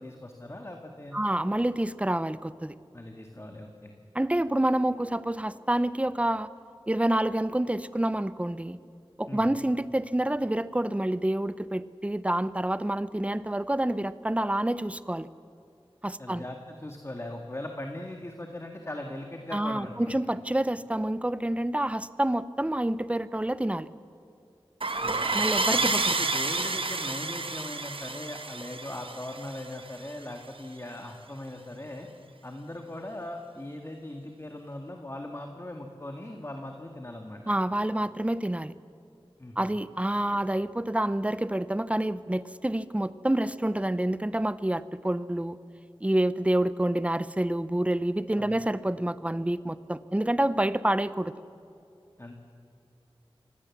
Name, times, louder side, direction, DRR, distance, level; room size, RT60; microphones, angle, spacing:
voice 1, 0.0-1.2 2.9-3.9 9.3-9.5 16.2-20.2 25.0-25.4 25.7-32.1 32.4-37.4 39.4-39.8 40.3-40.4 48.4-48.6 52.2-52.4, left 1 dB, 30° left, 3 dB, 1.9 m, -40 dB
voice 2, 1.1-2.8 4.1-6.5 6.9-8.8 9.2-15.3 16.0-16.4 19.5-23.9 25.3-26.2 37.5-38.7 39.6-45.6 46.0-51.3, right 1 dB, 15° right, 15 dB, 0.7 m, -28 dB
sound 1, 24.8-30.1, right 3 dB, 65° right, 1.4 m, -29 dB
25.5 x 18.0 x 7.3 m, 2.6 s
wide cardioid pair, 65°, 10 cm